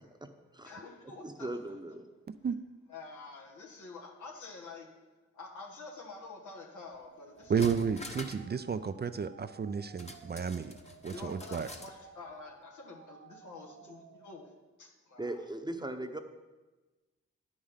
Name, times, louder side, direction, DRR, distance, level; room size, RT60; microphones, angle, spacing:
voice 1, 0.6-1.5 2.9-4.9 5.3-7.7 11.1-14.4 14.8-15.4, left 3 dB, 85° left, 0 dB, 1.5 m, -48 dB
voice 2, 1.2-2.0 15.2-16.2, right 1 dB, 15° right, 7 dB, 0.8 m, -38 dB
sound 1, 6.9-7.0 7.4-8.5 8.8-8.9 10.0-12.0 12.3-12.4, left 2 dB, 20° left, 1.0 m, -46 dB
sound 2, 7.1-14.5, right 6 dB, 90° right, 0.8 m, -56 dB
voice 3, 7.5-10.7 11.0-11.7, right 6 dB, 35° right, 11 dB, 0.4 m, -32 dB
9.4 x 5.0 x 5.6 m, 1.2 s
cardioid pair, 55°, 29 cm